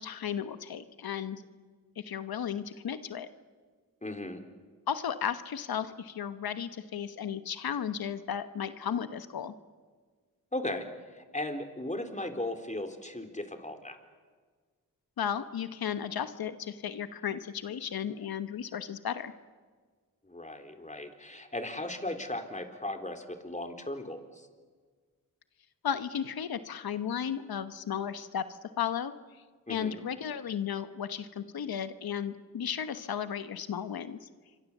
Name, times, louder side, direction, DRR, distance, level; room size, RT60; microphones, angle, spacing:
voice 1, 0.0-1.4 2.0-3.3 4.9-9.5 15.2-19.3 25.8-28.5 28.8-29.1 29.7-34.3, left 8 dB, 85° left, 11 dB, 1.2 m, -34 dB
voice 2, 4.0-4.4 10.5-10.9 11.1-14.0 20.3-24.2 29.7-30.0, left 1 dB, 20° left, 6 dB, 3.8 m, -37 dB
28.0 x 24.0 x 7.3 m, 1.5 s
cardioid pair, 40°, 36 cm